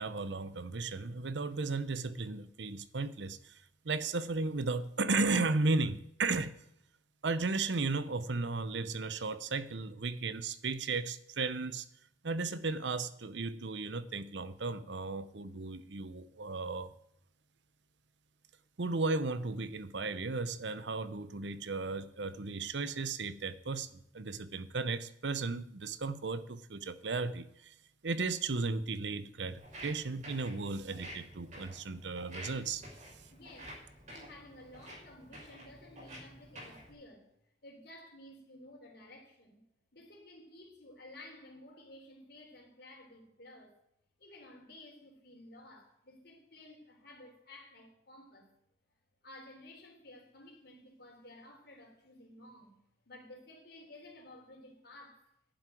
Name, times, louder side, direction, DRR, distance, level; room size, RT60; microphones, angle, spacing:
voice 1, 0.0-6.5 7.2-11.9 12.2-16.9 18.8-27.7 28.0-32.8, right 3 dB, 70° right, 0.8 m, -35 dB
Walk footsteps, 29.5-36.9, equal, 40° right, 5.8 m, -50 dB
voice 2, 33.3-33.8 34.1-39.6 39.9-43.8 44.2-48.5 49.2-52.8 53.1-55.3, left 1 dB, 60° left, 3.6 m, -54 dB
11.5 x 7.7 x 9.1 m
head